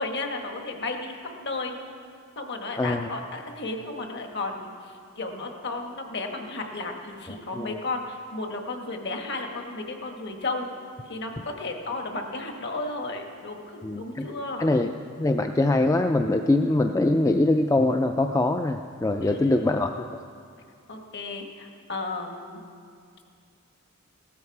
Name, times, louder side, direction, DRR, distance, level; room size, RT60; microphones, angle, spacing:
voice 1, 0.0-1.8 2.3-4.7 5.2-10.7 11.1-14.7 19.2-19.8 20.9-22.6, left 2 dB, 50° left, 3 dB, 1.5 m, -33 dB
voice 2, 2.8-3.1 7.3-7.8 13.8-14.3 14.6-14.9 15.2-20.2, left 2 dB, 15° left, 6 dB, 0.3 m, -23 dB
17.5 x 13.5 x 4.8 m, 2.3 s
head